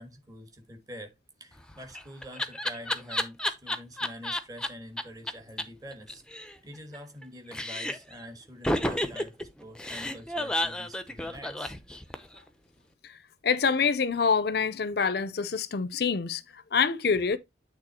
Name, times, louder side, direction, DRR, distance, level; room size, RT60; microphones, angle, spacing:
voice 1, 0.0-6.2 6.6-11.7, equal, 20° right, 1.6 m, -46 dB
Laughter, 1.6-4.7 5.0-5.1 5.3-5.4 5.6-5.7 5.9-7.2 7.5-8.1 8.6-12.4, left 1 dB, 5° left, 0.7 m, -31 dB
voice 2, 13.4-17.4, left 5 dB, 60° left, 0.5 m, -26 dB
9.0 x 3.5 x 4.2 m
head